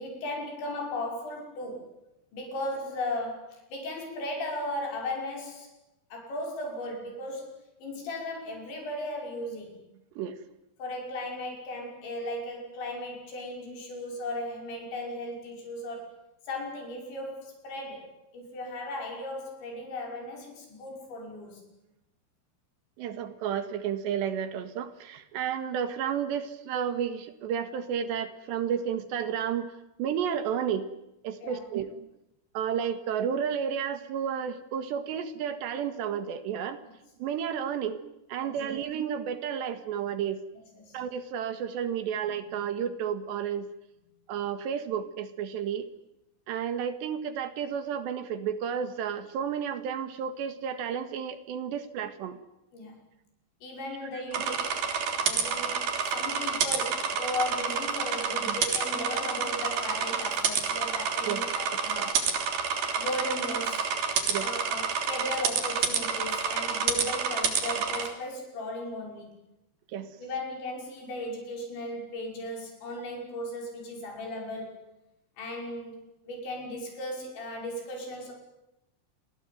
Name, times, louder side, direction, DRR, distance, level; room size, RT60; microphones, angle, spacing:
voice 1, 0.0-1.9 2.3-5.7 6.1-9.7 10.8-16.2 16.5-21.6 31.4-31.6 38.4-38.5 40.8-41.0 52.7-53.0 53.6-54.6 55.2-62.2 63.0-63.9 64.4-69.3 70.2-74.8 75.4-76.0 76.2-78.3, left 1 dB, 80° left, 1 dB, 8.2 m, -36 dB
voice 2, 23.0-29.7 30.0-30.9 31.2-32.1 32.6-36.8 37.2-38.0 38.3-40.4 40.9-43.7 44.3-45.9 46.5-52.4 54.5-54.7 56.5-56.6 58.5-58.6 61.3-61.4 62.0-62.1 64.3-64.5 69.9-70.2, right 8 dB, 75° right, 11 dB, 3.9 m, -32 dB
sound 1, 54.3-68.1, right 6 dB, 60° right, 5.0 m, -29 dB
28.5 x 21.5 x 9.4 m, 0.90 s
omnidirectional pair, 5.2 m